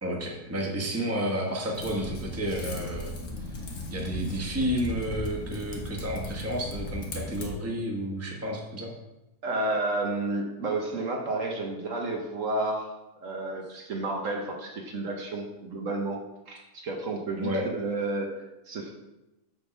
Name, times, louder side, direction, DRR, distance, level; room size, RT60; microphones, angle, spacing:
voice 1, 0.0-3.1 3.9-8.9 17.4-17.7, equal, 10° right, -1 dB, 1.0 m, -31 dB
Typing, 1.7-7.5, left 1 dB, 75° left, 1.7 m, -37 dB
voice 2, 9.4-12.9 13.2-16.2 16.5-18.3 18.7-18.9, right 2 dB, 60° right, 1 dB, 1.3 m, -31 dB
7.9 x 3.6 x 6.0 m, 0.97 s
omnidirectional pair, 1.6 m